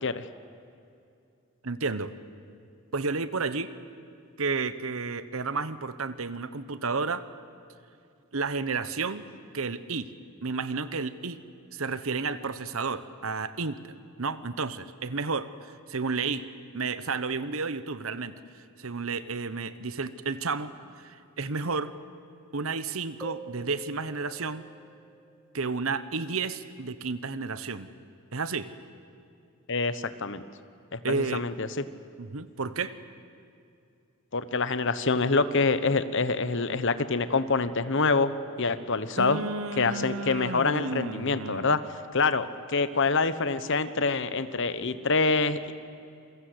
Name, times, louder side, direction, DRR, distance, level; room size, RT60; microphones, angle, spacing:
voice 1, 1.6-2.1 2.9-3.7 4.4-7.2 8.3-9.3 9.5-10.1 10.4-11.4 11.7-16.5 16.7-18.3 18.8-20.7 21.0-21.9 22.5-24.7 25.5-27.9 28.3-28.7 31.0-31.4 32.2-33.0 39.2-41.7, right 4 dB, 70° right, 14 dB, 1.1 m, -31 dB
sound 1, 23.2-26.5, right 4 dB, 5° right, 0.9 m, -48 dB
voice 2, 29.7-30.4 30.9-31.7 34.3-38.3 38.6-39.4 39.8-41.8 42.1-45.7, left 4 dB, 55° left, 13 dB, 1.1 m, -26 dB
28.0 x 22.5 x 8.1 m, 2.5 s
head